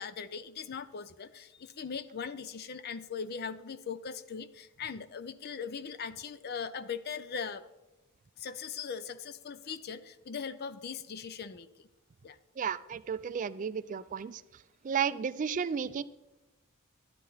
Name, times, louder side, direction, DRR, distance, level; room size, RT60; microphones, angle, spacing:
voice 1, 0.0-7.7 8.4-11.9 12.2-12.4, left 6 dB, 50° left, 14 dB, 0.5 m, -40 dB
voice 2, 12.6-14.4 14.8-16.0, right 7 dB, 40° right, 15 dB, 0.3 m, -33 dB
11.5 x 10.5 x 4.0 m, 1.0 s
head